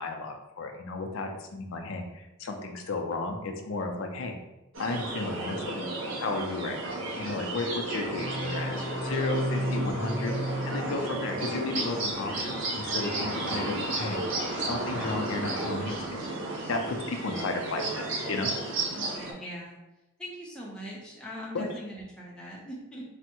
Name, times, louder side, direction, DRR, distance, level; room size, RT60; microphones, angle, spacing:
voice 1, 0.0-4.3 4.8-5.9 6.2-6.9 7.2-10.4 10.7-14.2 14.6-16.2 16.7-18.5 21.5-21.7, left 3 dB, 65° left, 3 dB, 0.4 m, -33 dB
sound 1, 4.7-19.3, right 2 dB, 65° right, 0.6 m, -33 dB
sound 2, 8.1-11.7, equal, 20° right, 1.2 m, -33 dB
voice 2, 8.7-9.1 9.5-9.9 18.9-19.8 20.2-23.0, equal, 5° left, -5 dB, 0.5 m, -42 dB
3.4 x 2.0 x 2.8 m, 0.96 s
head